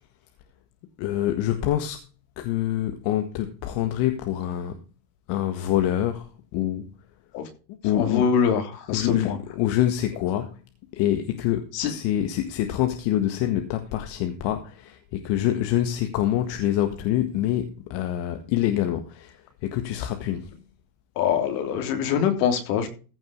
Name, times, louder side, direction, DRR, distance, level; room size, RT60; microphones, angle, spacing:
voice 1, 1.0-2.0 2.4-4.8 5.3-6.3 6.5-6.9 7.8-8.3 8.9-10.5 10.9-20.5, left 12 dB, 65° left, 1.7 m, -26 dB
voice 2, 7.9-8.6 8.9-9.4 11.7-11.9 21.2-22.9, left 7 dB, 80° left, 3.4 m, -23 dB
15.5 x 5.4 x 5.3 m
supercardioid pair, 105°, 46 cm